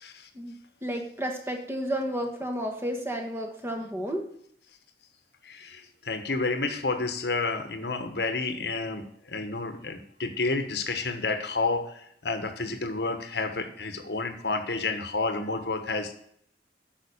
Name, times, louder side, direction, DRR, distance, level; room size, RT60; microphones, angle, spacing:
voice 1, 0.8-4.3, equal, 15° right, 3 dB, 1.3 m, -32 dB
voice 2, 5.4-16.1, left 3 dB, 65° left, 8 dB, 1.2 m, -30 dB
8.8 x 5.6 x 7.0 m, 0.68 s
head